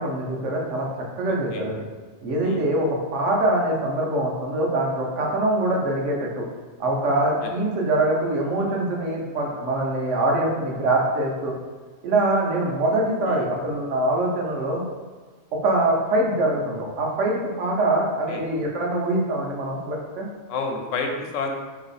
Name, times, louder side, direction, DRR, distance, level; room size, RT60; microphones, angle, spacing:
voice 1, 0.0-1.8 2.2-6.5 6.8-11.5 12.0-14.8 15.6-20.3, right 1 dB, 75° right, -1 dB, 1.1 m, -24 dB
voice 2, 13.2-13.5 18.3-18.4 20.5-21.5, left 4 dB, 90° left, 3 dB, 1.0 m, -29 dB
3.1 x 2.9 x 4.1 m, 1.4 s
omnidirectional pair, 1.3 m